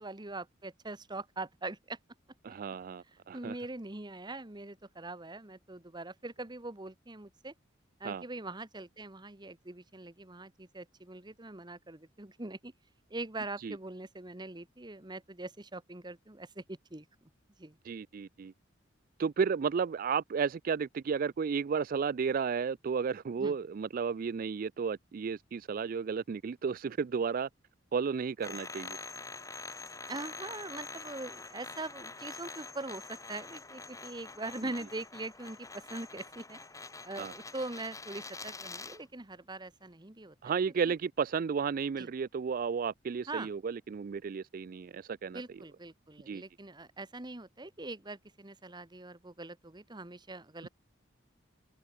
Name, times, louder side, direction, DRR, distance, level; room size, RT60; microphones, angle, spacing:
voice 1, 0.0-2.0 3.3-7.5 8.0-12.7 13.1-17.0 17.6-17.8 23.4-23.5 30.1-36.6 37.0-40.6 42.0-42.1 43.3-43.5 45.3-50.7, right 2 dB, 20° right, 1.4 m, -42 dB
voice 2, 2.4-3.6 8.0-8.2 13.6-13.8 17.8-18.5 19.2-27.5 27.9-29.0 37.2-37.3 40.4-45.4 46.3-46.4 50.6-50.7, right 6 dB, 45° right, 0.3 m, -33 dB
sound 1, 28.4-39.0, left 3 dB, 15° left, 2.3 m, -45 dB
head